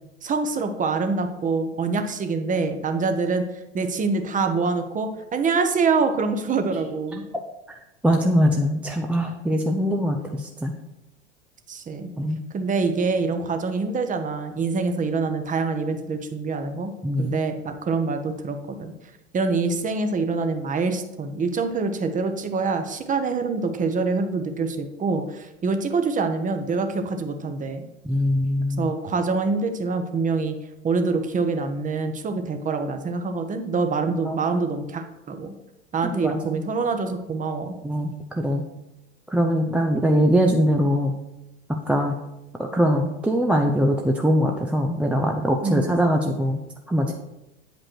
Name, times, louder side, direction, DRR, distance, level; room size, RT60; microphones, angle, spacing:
voice 1, 0.2-3.4 3.7-7.2 11.7-12.1 12.5-16.9 17.2-18.9 19.3-27.9 28.8-30.6 30.8-35.5 35.9-37.8 45.6-45.9, right 4 dB, 20° right, 7 dB, 0.8 m, -25 dB
voice 2, 8.0-10.7 12.2-12.4 17.0-17.4 28.0-28.9 34.1-34.4 36.1-36.6 37.8-38.6 39.3-41.1 41.7-42.2 42.6-46.6 46.9-47.2, equal, 5° right, 2 dB, 0.4 m, -22 dB
8.5 x 5.2 x 4.5 m, 0.95 s
hypercardioid pair, 90°, 36 cm